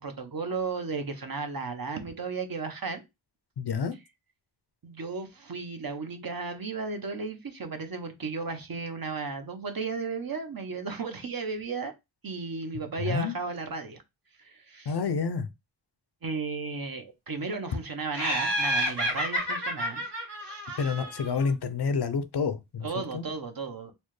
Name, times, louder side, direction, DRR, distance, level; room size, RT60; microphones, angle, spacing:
voice 1, 0.0-3.0 4.8-11.9 12.2-14.0 14.4-14.9 16.2-20.0 20.4-20.9 22.8-23.9, right 4 dB, 50° right, 0.8 m, -34 dB
voice 2, 3.6-3.9 13.0-13.3 14.9-15.5 20.8-22.9 23.1-23.3, left 5 dB, 60° left, 0.6 m, -28 dB
Laughter, 18.1-21.5, right 1 dB, 65° right, 1.7 m, -30 dB
4.2 x 2.2 x 3.1 m
wide cardioid pair, 85°, 44 cm